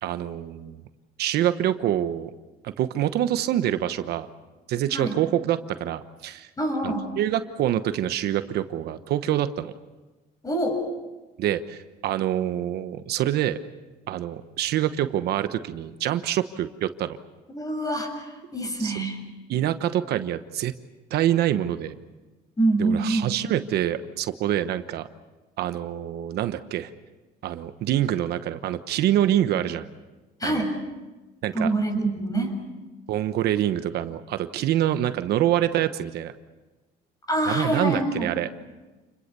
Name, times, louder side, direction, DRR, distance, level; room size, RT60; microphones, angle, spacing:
voice 1, 0.0-0.8 1.2-2.3 2.6-4.3 4.7-6.5 6.8-9.7 11.4-13.6 14.1-17.2 18.8-18.9 19.5-20.7 21.1-21.9 22.8-25.1 25.6-26.9 27.4-29.9 30.4-30.6 31.4-31.7 33.1-36.3 37.5-38.5, right 12 dB, 75° right, 10 dB, 1.1 m, -26 dB
voice 2, 6.6-7.1 10.4-10.8 17.5-19.2 22.6-23.3 30.4-30.8 31.5-32.6 37.3-38.3, right 1 dB, 20° left, 5 dB, 6.6 m, -25 dB
28.5 x 22.0 x 6.9 m, 1.2 s
cardioid pair, 110°, 17 cm